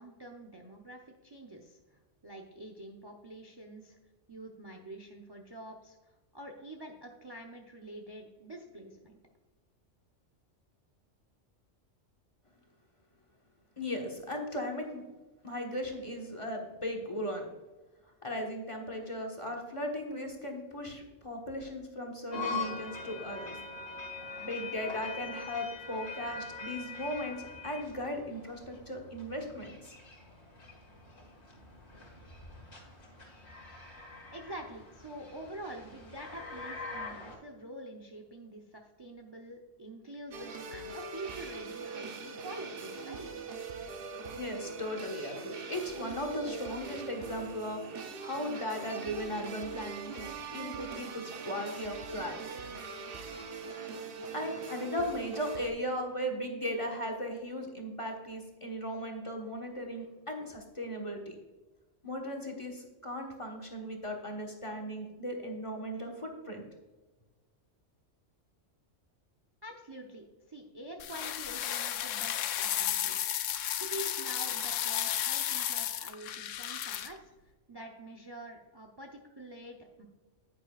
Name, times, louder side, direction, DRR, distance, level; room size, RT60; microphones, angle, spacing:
voice 1, 0.0-4.0 4.3-6.0 6.3-9.2 34.3-43.3 69.6-73.3 73.7-77.2 77.7-80.0, right 1 dB, 25° right, 2 dB, 0.7 m, -46 dB
voice 2, 13.8-15.0 15.4-17.5 18.2-23.5 24.4-29.9 44.3-47.8 48.1-52.5 54.3-61.4 62.0-66.7, equal, 25° left, 0 dB, 1.4 m, -37 dB
sound 1, 22.3-37.4, left 4 dB, 60° left, 2.2 m, -43 dB
sound 2, 40.3-55.7, right 4 dB, 50° right, 1.0 m, -42 dB
sound 3, 71.0-77.1, left 11 dB, 85° left, 0.9 m, -33 dB
9.9 x 9.2 x 2.4 m, 1.2 s
omnidirectional pair, 1.3 m